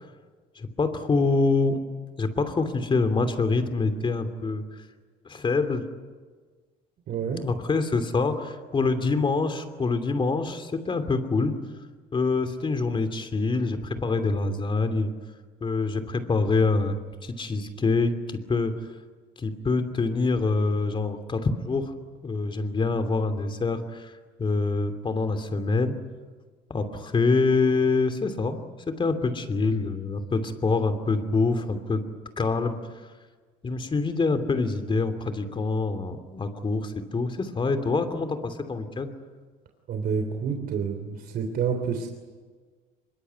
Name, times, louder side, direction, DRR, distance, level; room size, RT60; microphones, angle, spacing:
voice 1, 0.6-1.8 2.2-4.6 5.2-5.9 7.4-11.6 12.1-15.1 15.6-18.7 19.4-21.9 22.2-24.1 24.4-26.0 26.7-32.0 32.4-32.8 33.6-39.1, left 3 dB, 30° left, 9 dB, 2.9 m, -25 dB
voice 2, 7.1-7.4 39.9-42.1, right 6 dB, 60° right, 5 dB, 3.4 m, -28 dB
24.5 x 22.5 x 9.5 m, 1.4 s
cardioid pair, 110°, 17 cm